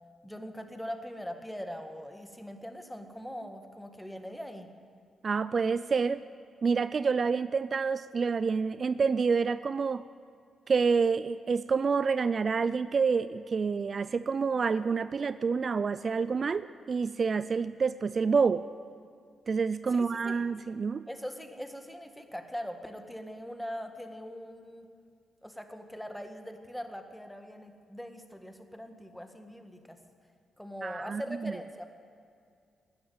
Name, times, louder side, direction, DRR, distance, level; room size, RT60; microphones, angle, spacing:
voice 1, 0.2-4.7 19.9-20.4 21.1-24.9 25.4-30.0 30.6-31.9, equal, 5° left, 6 dB, 1.7 m, -41 dB
voice 2, 5.2-6.3 6.6-10.0 10.7-18.6 19.5-21.0 30.8-31.5, right 5 dB, 50° right, 15 dB, 0.3 m, -28 dB
13.5 x 10.0 x 9.4 m, 2.3 s
cardioid pair, 65°, 0 cm